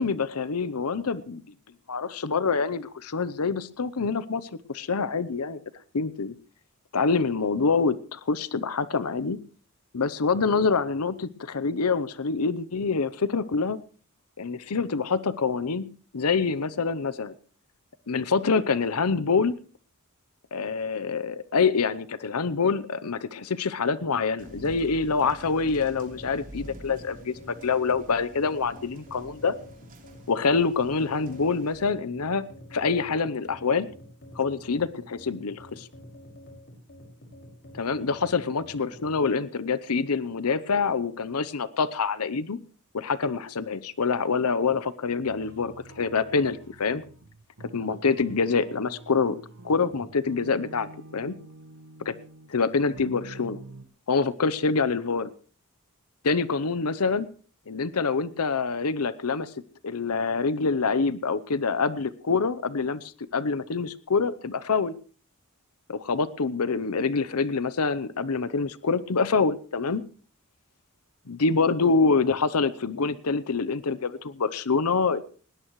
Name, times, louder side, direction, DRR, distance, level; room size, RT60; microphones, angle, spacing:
voice 1, 0.0-1.4 1.9-5.6 5.9-6.3 6.9-9.4 9.9-13.8 14.4-15.9 16.1-17.3 18.1-19.5 20.5-29.5 30.3-32.5 32.7-33.9 34.4-35.9 37.7-42.6 42.9-47.0 47.7-49.4 49.6-51.3 52.0-52.1 52.5-53.6 54.1-55.3 56.2-57.3 57.7-59.5 59.8-64.9 65.9-70.0 71.3-75.2, left 4 dB, 80° left, 16 dB, 0.8 m, -26 dB
sound 1, 24.4-31.9, equal, 40° right, 3.5 m, -48 dB
sound 2, 25.0-39.3, left 1 dB, 55° left, 5.4 m, -48 dB
sound 3, 45.2-53.8, right 2 dB, 70° right, 1.3 m, -47 dB
20.0 x 18.0 x 3.1 m, 0.40 s
head